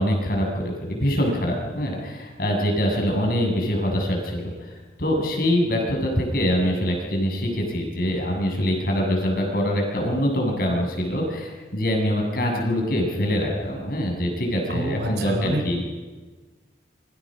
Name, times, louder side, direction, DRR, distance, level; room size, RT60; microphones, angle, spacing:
voice 1, 0.0-4.7 5.0-15.8, equal, 55° left, 1 dB, 7.6 m, -24 dB
voice 2, 14.7-15.6, right 1 dB, 70° right, 5 dB, 4.2 m, -27 dB
27.5 x 25.0 x 6.5 m, 1.3 s
head